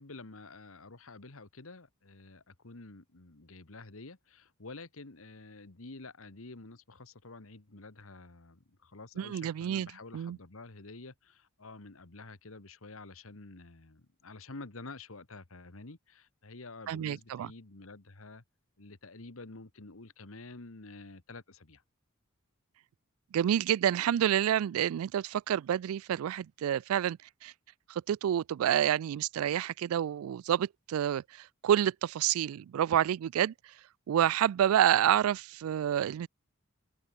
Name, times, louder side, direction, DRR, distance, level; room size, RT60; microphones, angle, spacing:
voice 1, 0.0-18.4 18.8-21.8, left 3 dB, 75° left, 1.6 m, -49 dB
voice 2, 9.2-9.9 10.1-10.4 16.9-17.5 23.3-27.5 27.9-33.5 34.1-36.3, right 10 dB, 85° right, 0.3 m, -28 dB
head